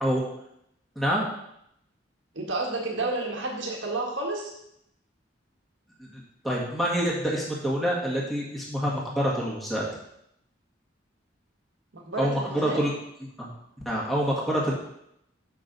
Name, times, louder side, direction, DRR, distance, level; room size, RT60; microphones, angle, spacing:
voice 1, 0.9-1.3 6.0-9.8 12.2-12.9 13.4-13.5 13.8-14.7, equal, ahead, -5 dB, 1.7 m, -27 dB
voice 2, 2.3-4.5 11.9-12.8, right 2 dB, 85° right, 0 dB, 1.6 m, -30 dB
7.6 x 6.1 x 4.0 m, 0.77 s
head